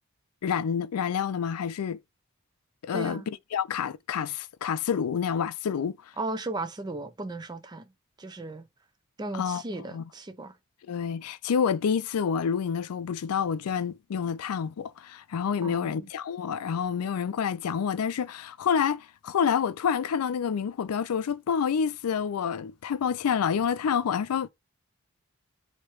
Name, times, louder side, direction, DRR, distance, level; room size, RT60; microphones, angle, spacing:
voice 1, 0.4-2.0 2.8-6.0 9.3-9.6 9.9-10.0 10.9-24.5, left 7 dB, 90° left, 0.4 m, -28 dB
voice 2, 2.9-3.3 6.2-7.9 8.2-8.7 9.2-10.6 15.6-16.1, right 2 dB, 20° right, 0.5 m, -36 dB
3.1 x 2.9 x 4.5 m
head